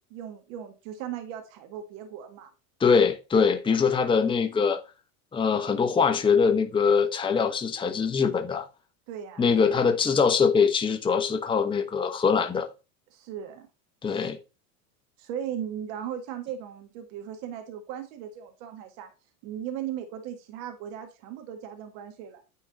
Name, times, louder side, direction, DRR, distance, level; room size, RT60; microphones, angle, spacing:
voice 1, 0.1-2.5 9.1-9.5 13.1-13.7 14.1-14.3 15.2-19.1 19.4-22.4, right 9 dB, 60° right, 1.6 m, -37 dB
voice 2, 2.8-4.8 5.3-8.6 9.4-12.7 14.0-14.4, left 5 dB, 10° left, 0.9 m, -23 dB
9.6 x 3.8 x 3.8 m
supercardioid pair, 115°, 43 cm